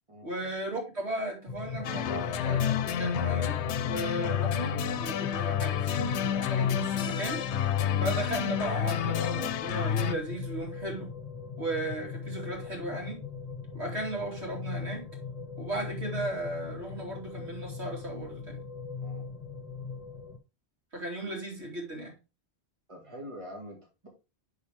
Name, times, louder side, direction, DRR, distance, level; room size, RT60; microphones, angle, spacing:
voice 1, 0.2-3.6 3.9-7.4 8.0-11.1 11.6-13.2 13.7-15.1 15.6-18.6 20.9-22.1, right 1 dB, 75° right, 3.1 m, -36 dB
sound 1, 1.5-20.4, left 5 dB, 30° left, 1.5 m, -39 dB
sound 2, 1.8-10.1, left 10 dB, 85° left, 0.9 m, -29 dB
voice 2, 22.9-24.1, equal, 30° right, 2.2 m, -45 dB
9.5 x 4.8 x 3.5 m
omnidirectional pair, 1.1 m